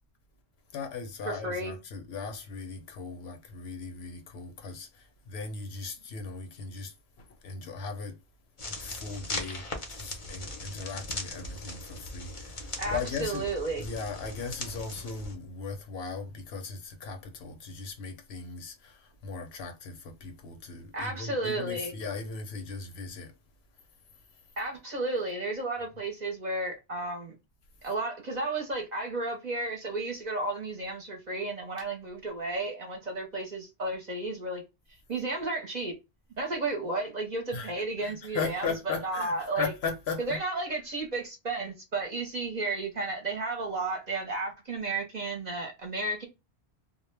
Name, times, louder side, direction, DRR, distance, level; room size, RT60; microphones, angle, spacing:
voice 1, 0.7-8.2 8.8-13.5 13.7-23.3 37.5-37.7 38.0-40.4, left 4 dB, 70° left, 0.8 m, -38 dB
voice 2, 1.2-1.8 12.8-13.8 20.9-21.9 24.6-27.4 27.8-34.6 35.1-35.9 36.4-39.7 40.2-46.3, right 2 dB, 45° right, 0.7 m, -33 dB
sound 1, 8.6-15.3, left 2 dB, 40° left, 0.5 m, -39 dB
2.2 x 2.1 x 3.2 m
omnidirectional pair, 1.1 m